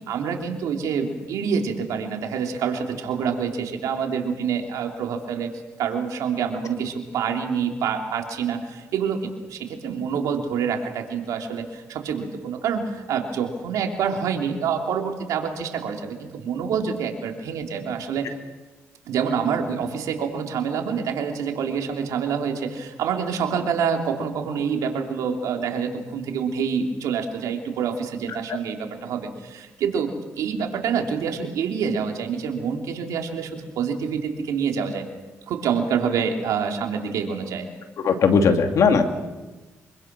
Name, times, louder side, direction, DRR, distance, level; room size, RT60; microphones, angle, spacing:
voice 1, 0.1-5.5 5.8-18.3 19.1-35.1 35.5-37.7, right 6 dB, 85° right, 3 dB, 3.2 m, -27 dB
voice 2, 38.0-39.0, left 5 dB, 70° left, 5 dB, 2.7 m, -18 dB
25.5 x 24.0 x 6.1 m, 1.2 s
cardioid pair, 75°, 6 cm